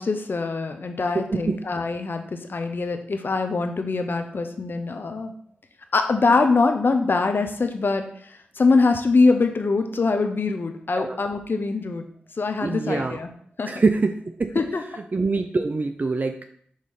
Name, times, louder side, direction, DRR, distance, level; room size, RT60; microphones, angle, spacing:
voice 1, 0.0-5.3 5.9-8.0 8.6-12.0 12.4-13.3 13.6-13.7 14.5-14.8, left 3 dB, 60° left, 6 dB, 0.9 m, -23 dB
voice 2, 1.1-1.7 10.9-11.2 12.6-13.2 13.7-14.6 15.1-16.4, right 3 dB, 45° right, 7 dB, 0.5 m, -24 dB
6.5 x 3.2 x 5.5 m, 0.63 s
cardioid pair, 45°, 4 cm